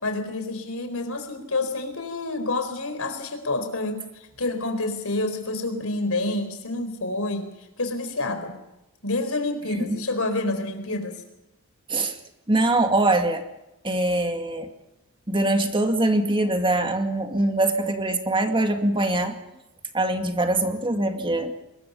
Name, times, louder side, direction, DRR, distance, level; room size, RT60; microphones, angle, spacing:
voice 1, 0.0-4.0 4.4-7.5 7.8-8.6 9.0-11.2, left 2 dB, 70° left, 8 dB, 4.2 m, -28 dB
voice 2, 12.5-13.4 13.8-14.7 15.3-19.4 19.9-21.6, right 2 dB, 25° right, 5 dB, 2.3 m, -23 dB
24.0 x 21.5 x 5.6 m, 0.92 s
head